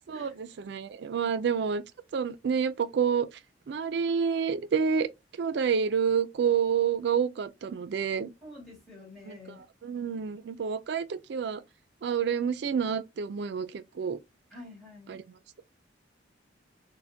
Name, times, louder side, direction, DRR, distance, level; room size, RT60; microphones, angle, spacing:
voice 1, 0.1-1.8 2.1-3.3 3.7-5.1 5.4-8.3 9.8-11.6 12.0-14.2 15.1-15.2, right 6 dB, 60° right, 0.3 m, -28 dB
voice 2, 8.4-9.6 14.5-15.2, left 2 dB, ahead, 2.0 m, -48 dB
4.2 x 2.1 x 2.7 m
head